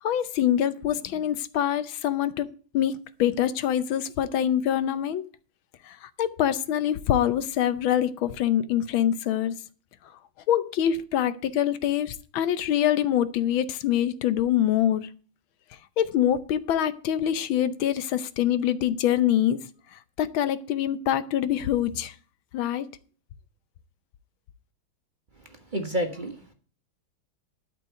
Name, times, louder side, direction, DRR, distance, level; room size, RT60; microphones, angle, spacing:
voice 1, 0.0-2.5 2.7-5.2 5.8-9.5 10.5-15.1 16.0-19.6 19.9-22.1 22.5-22.9, left 10 dB, 75° left, 1.5 m, -25 dB
voice 2, 25.4-26.5, equal, 25° right, 1.3 m, -31 dB
12.5 x 4.7 x 8.0 m
omnidirectional pair, 2.3 m